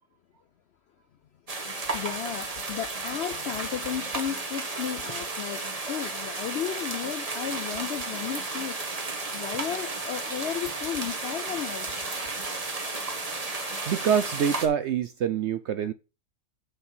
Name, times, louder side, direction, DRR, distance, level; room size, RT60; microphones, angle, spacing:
sound 1, 1.5-14.7, right 3 dB, 25° right, 1.1 m, -33 dB
voice 1, 1.7-5.6 5.9-9.0 9.3-12.0, left 9 dB, 70° left, 0.6 m, -34 dB
voice 2, 13.9-15.9, right 8 dB, 70° right, 0.7 m, -25 dB
6.6 x 5.6 x 6.0 m
omnidirectional pair, 1.6 m